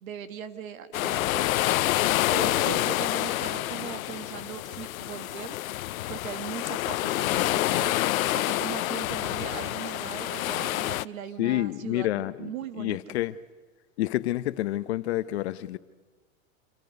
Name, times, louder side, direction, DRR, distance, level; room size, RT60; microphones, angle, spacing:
voice 1, 0.0-1.6 2.3-5.6 6.1-7.9 8.3-13.2, right 9 dB, 80° right, 1.9 m, -39 dB
sound 1, 0.9-11.1, left 16 dB, 80° left, 0.6 m, -27 dB
voice 2, 11.4-13.4 14.0-15.8, left 15 dB, 50° left, 0.8 m, -29 dB
27.0 x 26.5 x 5.3 m
supercardioid pair, 165°, 40 cm